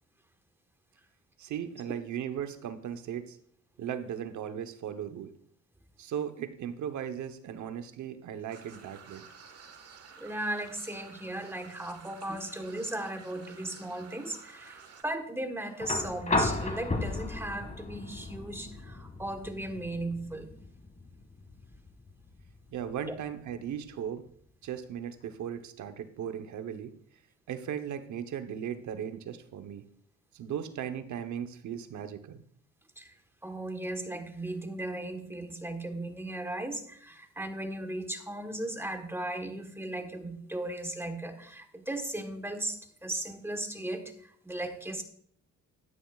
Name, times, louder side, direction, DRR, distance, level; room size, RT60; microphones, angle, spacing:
voice 1, 1.4-3.4 3.8-5.3 6.0-9.3 22.7-24.2 24.6-26.9 27.5-29.8 30.3-32.4, right 9 dB, 70° right, 9 dB, 1.0 m, -37 dB
sound 1, 8.5-15.0, right 6 dB, 55° right, 1.5 m, -52 dB
voice 2, 10.2-20.5 33.0-33.1 33.4-45.0, right 1 dB, 10° right, 6 dB, 1.3 m, -37 dB
sound 2, 15.8-23.8 25.3-25.4, left 2 dB, 25° left, 1.8 m, -35 dB
12.5 x 9.6 x 2.4 m, 0.64 s
cardioid pair, 90°, 30 cm